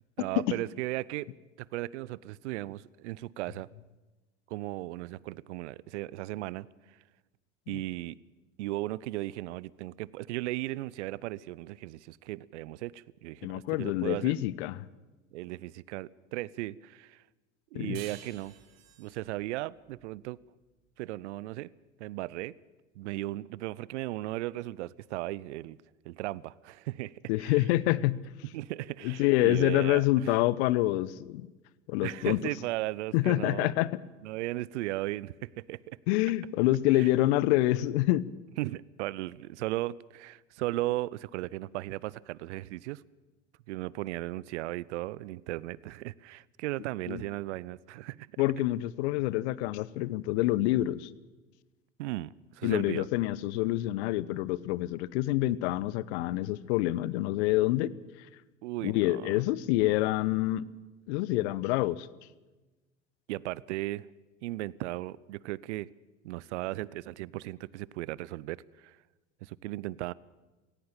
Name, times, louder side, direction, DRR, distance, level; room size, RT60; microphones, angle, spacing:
voice 1, 0.2-1.3 1.7-3.7 4.5-6.7 7.7-8.2 8.6-14.4 15.3-17.2 17.7-18.6 19.0-20.4 21.0-21.7 22.0-22.5 23.0-25.8 26.0-27.6 28.4-30.4 32.0-33.7 34.2-36.0 36.9-37.1 38.6-43.0 43.7-48.3 52.0-53.1 58.6-59.4 63.3-64.1 64.4-65.9 66.2-69.0 69.4-70.1, right 17 dB, 65° right, 23 dB, 0.7 m, -36 dB
voice 2, 13.4-14.8 17.7-18.0 27.3-28.2 29.0-31.5 31.9-32.4 33.1-33.9 36.1-38.2 47.1-47.2 48.4-51.1 52.6-57.9 58.8-60.6 61.1-62.1, left 16 dB, 60° left, 20 dB, 0.9 m, -27 dB
sound 1, 17.9-21.1, right 10 dB, 45° right, 2.4 m, -52 dB
17.5 x 16.5 x 8.9 m, 1.2 s
hypercardioid pair, 80°, 37 cm